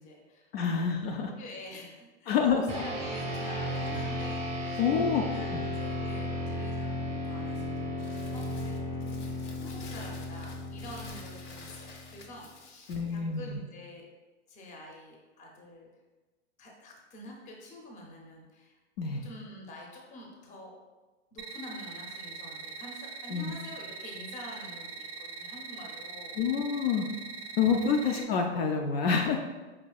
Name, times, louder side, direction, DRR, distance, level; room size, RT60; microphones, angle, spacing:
voice 1, 0.0-0.8 1.2-9.2 9.6-14.1 14.5-15.9 16.6-18.8 19.2-20.7 21.3-26.4 28.0-28.1, left 1 dB, 20° left, 0 dB, 0.6 m, -47 dB
voice 2, 0.5-1.3 2.3-2.6 4.8-5.2 5.5-5.6 12.9-13.6 19.0-19.2 23.3-23.5 26.4-27.1 27.6-29.4, left 6 dB, 60° left, 2 dB, 0.5 m, -27 dB
sound 1, 2.7-12.3, left 1 dB, 20° right, 0.6 m, -35 dB
Crumpling crinkling, 8.0-13.2, left 3 dB, 75° left, 0.8 m, -49 dB
sound 2, 21.4-28.2, right 4 dB, 60° right, 0.4 m, -42 dB
5.1 x 2.6 x 2.3 m, 1.2 s
hypercardioid pair, 125°, 36 cm